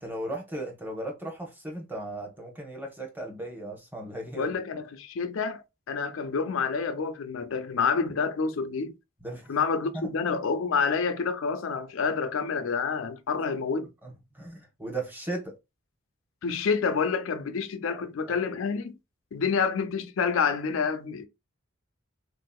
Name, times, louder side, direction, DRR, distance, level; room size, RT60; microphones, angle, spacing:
voice 1, 0.0-4.5 9.2-9.6 9.9-10.1 14.0-15.5 17.9-18.0 18.3-18.4, right 1 dB, 10° right, 0.9 m, -36 dB
voice 2, 4.4-8.9 9.5-13.9 16.4-19.0 19.3-21.3, left 5 dB, 75° left, 0.4 m, -28 dB
3.7 x 2.6 x 2.2 m
head